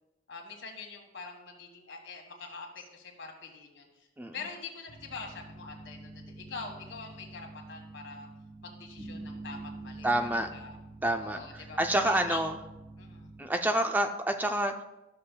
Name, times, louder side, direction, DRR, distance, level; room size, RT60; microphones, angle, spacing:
voice 1, 0.3-4.1 4.3-8.3 8.6-10.8 11.2-11.8 12.0-12.4 13.0-13.3, left 4 dB, 80° left, 3 dB, 1.5 m, -44 dB
sound 1, 4.9-13.4, right 2 dB, 50° right, 1.4 m, -46 dB
voice 2, 10.0-10.5 11.0-12.6 13.4-14.8, right 1 dB, 10° right, 5 dB, 0.4 m, -28 dB
13.0 x 6.7 x 2.2 m, 0.98 s
head